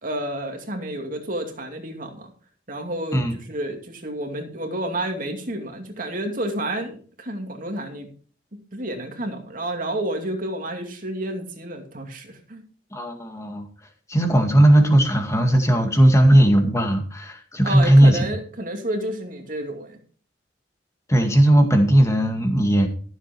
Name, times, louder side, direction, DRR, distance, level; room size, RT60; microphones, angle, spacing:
voice 1, 0.0-2.3 2.7-8.1 8.5-12.6 17.6-20.0, right 1 dB, 45° right, 3 dB, 2.5 m, -30 dB
voice 2, 12.9-13.7 14.1-18.2 21.1-22.9, right 1 dB, 15° left, 4 dB, 2.0 m, -17 dB
13.5 x 7.7 x 4.5 m, 0.41 s
head